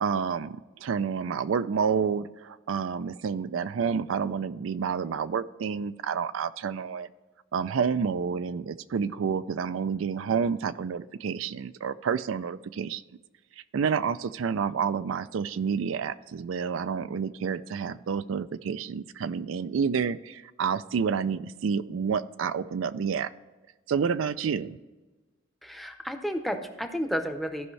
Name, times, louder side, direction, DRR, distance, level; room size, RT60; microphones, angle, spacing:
voice 1, 0.0-7.1 7.5-13.0 13.7-23.3 23.9-24.8, right 6 dB, 85° right, 13 dB, 0.4 m, -29 dB
voice 2, 25.6-27.7, equal, ahead, 6 dB, 0.7 m, -32 dB
15.0 x 5.5 x 3.2 m, 1.2 s
head